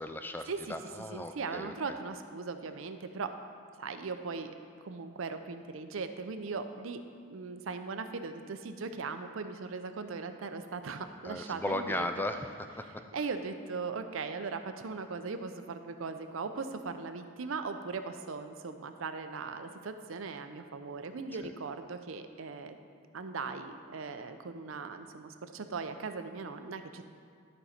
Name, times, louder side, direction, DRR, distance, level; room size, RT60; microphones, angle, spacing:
voice 1, 0.0-1.7 11.2-12.7 21.4-21.5, left 1 dB, 10° left, 7 dB, 0.3 m, -36 dB
voice 2, 1.1-3.3 3.8-4.5 4.8-7.0 7.3-12.3 13.1-22.8 23.1-27.0, right 4 dB, 85° right, 8 dB, 0.6 m, -39 dB
12.5 x 5.3 x 4.3 m, 2.1 s
head